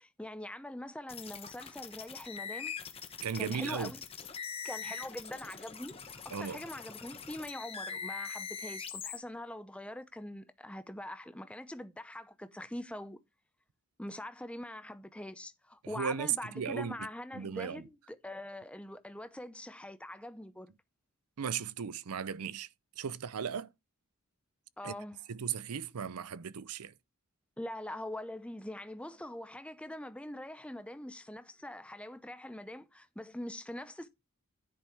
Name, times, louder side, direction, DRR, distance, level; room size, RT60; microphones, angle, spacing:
voice 1, 0.0-2.7 3.4-4.0 4.6-13.2 14.0-20.7 24.8-25.2 27.6-34.1, left 1 dB, 5° left, 0.6 m, -43 dB
sound 1, 1.1-9.2, left 6 dB, 25° left, 1.1 m, -43 dB
voice 2, 3.2-3.9 6.3-6.6 15.9-17.0 17.3-17.8 21.4-22.7 23.0-23.7 24.8-24.9 25.3-26.9, right 7 dB, 90° right, 0.6 m, -36 dB
10.5 x 5.4 x 4.6 m
head